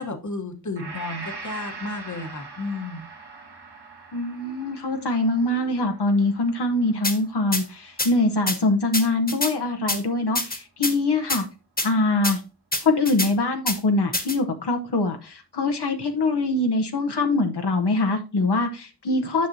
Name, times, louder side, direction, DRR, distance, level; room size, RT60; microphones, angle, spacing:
voice 1, 0.0-3.1, left 3 dB, 45° left, 6 dB, 1.1 m, -32 dB
Gong, 0.8-8.8, right 3 dB, 80° right, 1.7 m, -42 dB
voice 2, 4.1-11.4 11.8-12.4 12.8-19.5, left 2 dB, 80° left, 4 dB, 0.9 m, -23 dB
sound 1, 7.0-7.2 7.5-7.6 8.0-8.1 8.5-8.6 8.9-9.5 9.9-10.0 10.3-10.9 11.3-11.4 11.8-11.9 12.2-12.3 12.7-13.3 13.7-13.8 14.1-14.4, left 1 dB, 25° left, 1.3 m, -25 dB
9.5 x 6.0 x 2.7 m, 0.33 s
wide cardioid pair, 55°, 40 cm